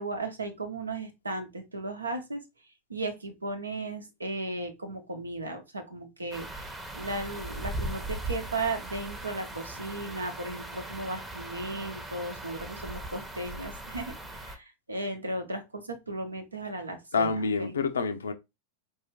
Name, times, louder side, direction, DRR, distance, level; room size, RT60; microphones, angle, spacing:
voice 1, 0.0-17.7, right 2 dB, 80° right, 0.9 m, -36 dB
sound 1, 6.3-14.6, right 1 dB, 10° right, 0.8 m, -39 dB
voice 2, 17.1-18.3, left 4 dB, 70° left, 0.6 m, -27 dB
4.7 x 2.8 x 2.9 m
figure-of-eight pair, 90°, 0 cm